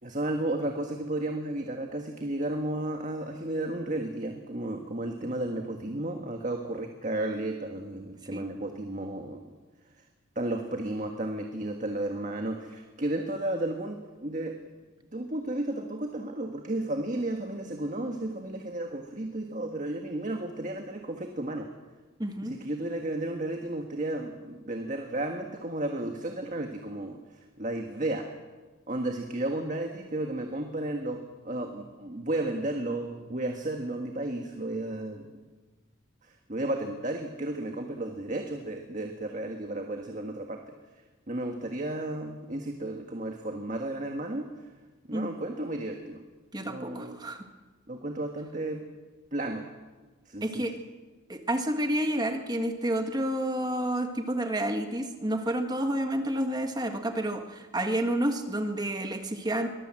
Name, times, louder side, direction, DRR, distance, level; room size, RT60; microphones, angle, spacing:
voice 1, 0.0-9.5 10.3-14.6 15.1-21.7 22.4-28.3 28.9-35.3 36.2-40.7 41.3-44.5 45.1-46.2 46.6-47.2 47.9-48.8 49.3-49.7 50.3-50.7, right 1 dB, 35° right, 3 dB, 1.6 m, -33 dB
voice 2, 22.2-22.5 45.1-45.3 46.5-47.4 50.4-50.7 51.3-59.7, right 1 dB, 20° right, 5 dB, 1.6 m, -29 dB
23.0 x 19.5 x 7.7 m, 1.3 s
head